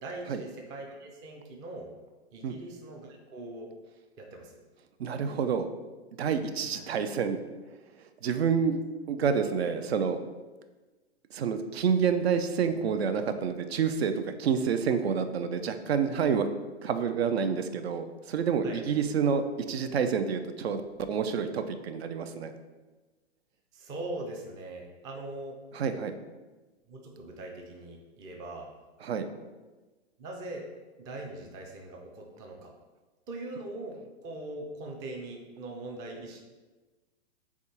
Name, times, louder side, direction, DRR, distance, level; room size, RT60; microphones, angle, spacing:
voice 1, 0.0-1.9 2.3-3.7 4.2-4.6 6.7-6.8 18.6-18.8 23.7-25.6 26.9-28.7 30.2-30.7 31.0-32.7 33.3-36.4, right 2 dB, 10° right, 1 dB, 0.4 m, -41 dB
voice 2, 5.0-5.7 6.2-7.4 8.2-8.8 9.1-10.2 11.3-14.1 14.4-16.5 16.8-19.4 19.7-20.8 21.1-22.5 25.7-26.2 29.0-29.3, right 6 dB, 70° right, 9 dB, 0.5 m, -28 dB
3.6 x 3.5 x 4.2 m, 1.2 s
hypercardioid pair, 120°, 33 cm